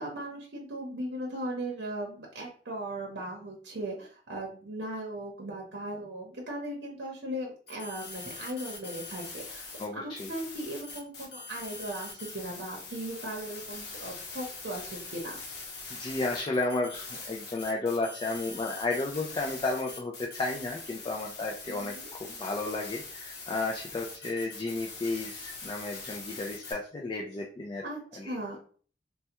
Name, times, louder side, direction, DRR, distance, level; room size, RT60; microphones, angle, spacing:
voice 1, 0.0-9.7 9.9-15.4 21.7-22.1 27.8-28.6, right 1 dB, 70° right, -1 dB, 0.7 m, -38 dB
sound 1, 7.7-9.8 10.2-26.7, left 3 dB, 60° left, 0.9 m, -43 dB
voice 2, 9.8-10.3 15.9-27.8 28.2-28.4, left 2 dB, 25° left, 0 dB, 0.3 m, -33 dB
3.3 x 2.1 x 2.8 m, 0.43 s
head